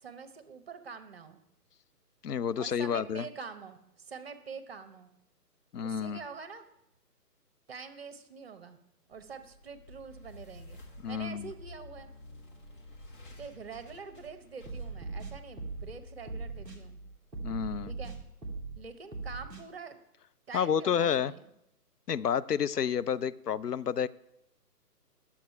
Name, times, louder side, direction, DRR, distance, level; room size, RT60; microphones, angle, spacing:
voice 1, 0.0-1.4 2.6-5.1 5.8-6.7 7.7-8.8 9.1-12.1 13.4-17.0 17.8-18.1 18.8-20.0 20.5-21.5, right 5 dB, 40° right, 9 dB, 0.9 m, -45 dB
voice 2, 2.2-3.2 5.7-6.2 11.0-11.5 17.4-17.9 20.5-21.3 22.1-24.1, left 8 dB, 70° left, 16 dB, 0.5 m, -30 dB
sound 1, 9.1-18.3, left 1 dB, 30° left, 1.3 m, -51 dB
sound 2, 14.6-15.9 16.3-16.8 17.3-18.8 19.1-19.6, right 3 dB, 5° right, 0.9 m, -39 dB
11.0 x 7.2 x 5.5 m, 0.84 s
figure-of-eight pair, 140°, 48 cm